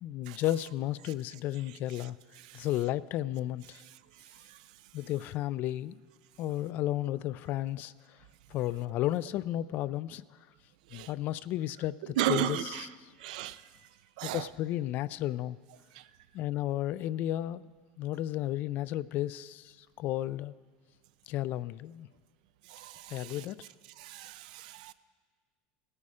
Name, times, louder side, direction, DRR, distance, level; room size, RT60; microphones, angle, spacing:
voice 1, 0.0-2.2 2.5-3.8 4.9-6.0 6.4-8.2 8.5-10.2 10.9-13.1 14.2-15.6 16.3-17.6 18.0-20.5 21.3-22.1 23.1-23.6, left 14 dB, 45° left, 18 dB, 0.3 m, -33 dB
voice 2, 12.2-12.9 13.2-13.6 14.2-14.4 15.9-16.0 22.7-23.4 24.0-24.9, right 12 dB, 75° right, 14 dB, 0.5 m, -34 dB
17.0 x 9.7 x 4.9 m, 1.5 s
supercardioid pair, 140°, 4 cm